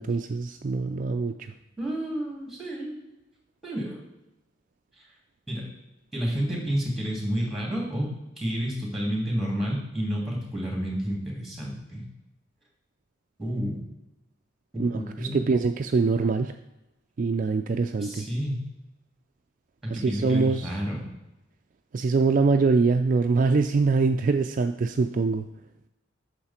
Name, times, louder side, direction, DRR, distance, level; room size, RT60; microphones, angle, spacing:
voice 1, 0.0-1.3 14.8-15.0 15.3-16.5 17.2-18.3 19.9-20.7 21.9-25.4, right 4 dB, 45° right, 6 dB, 0.4 m, -23 dB
voice 2, 1.8-2.9 3.6-4.0 5.5-5.7 6.1-8.1 8.4-12.0 13.4-13.8 14.7-15.5 18.0-18.7 19.8-21.1, equal, ahead, -2 dB, 2.9 m, -30 dB
8.6 x 6.6 x 4.3 m, 0.93 s
head